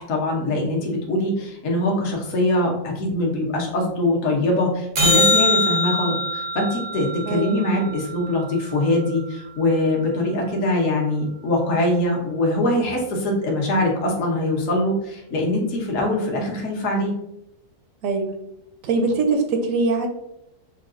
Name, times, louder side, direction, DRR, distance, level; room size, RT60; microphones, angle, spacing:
voice 1, 0.0-17.1, left 1 dB, 55° left, -1 dB, 1.1 m, -23 dB
sound 1, 5.0-9.4 16.0-16.1, left 1 dB, 85° right, 0.3 m, -23 dB
voice 2, 7.3-7.6 18.0-18.3 18.8-20.1, right 3 dB, 70° right, 5 dB, 0.8 m, -22 dB
5.6 x 2.3 x 2.4 m, 0.83 s
omnidirectional pair, 1.8 m